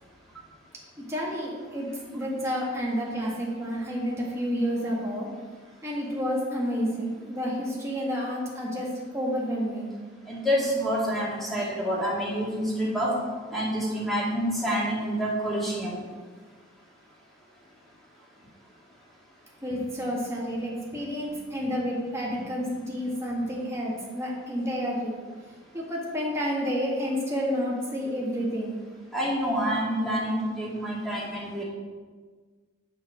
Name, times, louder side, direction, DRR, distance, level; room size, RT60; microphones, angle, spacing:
voice 1, 1.1-5.3 5.8-9.9 19.6-25.2 25.7-28.8, equal, 15° right, -4 dB, 1.8 m, -30 dB
voice 2, 10.3-13.1 13.5-16.0 29.1-31.6, equal, ahead, -7 dB, 2.4 m, -27 dB
7.4 x 5.7 x 6.2 m, 1.5 s
head